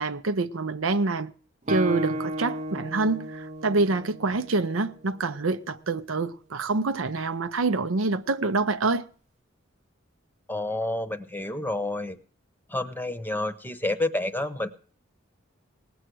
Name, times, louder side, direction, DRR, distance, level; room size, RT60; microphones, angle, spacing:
voice 1, 0.0-1.3 1.7-9.0, right 3 dB, 85° right, 0.7 m, -26 dB
Guitar, 1.7-5.3, equal, 35° right, 0.6 m, -34 dB
voice 2, 10.5-12.2 12.7-14.7, left 2 dB, 10° left, 0.9 m, -29 dB
18.5 x 8.0 x 6.2 m
head